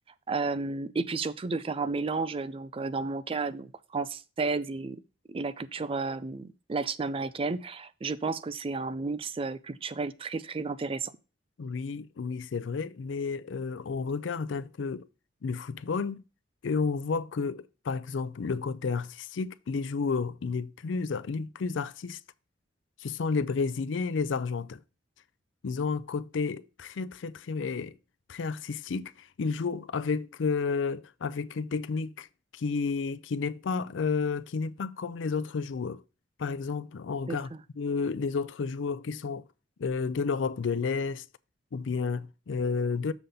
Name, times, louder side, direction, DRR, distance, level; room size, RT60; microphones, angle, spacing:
voice 1, 0.3-5.0 5.3-11.1 37.3-37.6, right 4 dB, 30° right, 0.4 m, -32 dB
voice 2, 11.6-15.1 15.4-16.2 16.6-22.2 23.0-24.8 25.6-28.0 28.3-32.3 32.5-36.0 36.4-39.4 39.8-41.3 41.7-43.1, left 5 dB, 75° left, 0.4 m, -31 dB
7.1 x 6.7 x 3.8 m
head